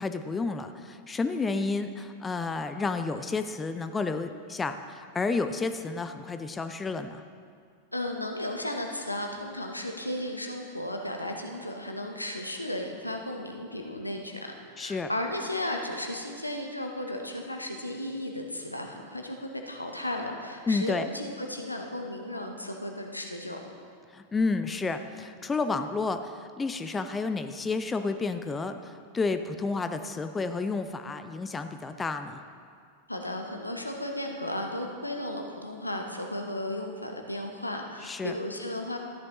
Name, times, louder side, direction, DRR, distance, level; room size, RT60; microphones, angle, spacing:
voice 1, 0.0-7.2 14.8-15.1 20.7-21.1 24.1-32.4 38.0-38.3, left 4 dB, 15° left, 8 dB, 0.5 m, -31 dB
voice 2, 7.9-14.5 14.8-23.6 33.1-39.0, left 1 dB, 85° left, 3 dB, 1.0 m, -34 dB
14.0 x 10.5 x 3.0 m, 2.2 s
figure-of-eight pair, 90°, 0 cm